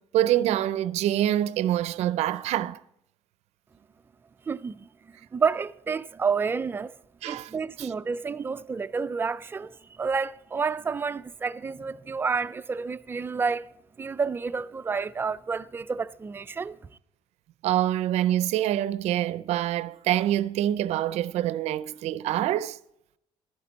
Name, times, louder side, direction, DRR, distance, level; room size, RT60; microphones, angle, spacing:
voice 1, 0.0-2.8 7.2-7.9 17.6-22.8, right 12 dB, 80° right, 0.5 m, -26 dB
voice 2, 4.5-4.9 5.3-6.9 7.3-13.7 14.0-16.8, right 5 dB, 20° right, 0.3 m, -29 dB
11.5 x 9.6 x 4.0 m
cardioid pair, 150°, 11 cm